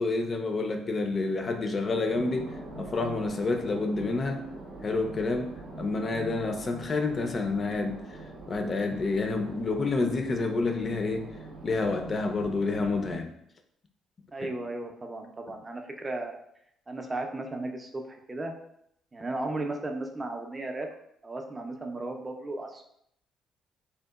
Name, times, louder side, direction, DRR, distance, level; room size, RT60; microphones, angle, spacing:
voice 1, 0.0-4.5 4.8-8.0 8.5-11.3 11.6-13.3, left 3 dB, 40° left, 5 dB, 0.4 m, -29 dB
sound 1, 2.1-13.2, right 2 dB, 85° right, 0.6 m, -43 dB
voice 2, 14.3-16.4 16.9-18.5 19.1-20.9 21.2-22.8, right 2 dB, 25° right, 3 dB, 0.4 m, -35 dB
2.8 x 2.1 x 2.3 m, 0.72 s
supercardioid pair, 65°, 0 cm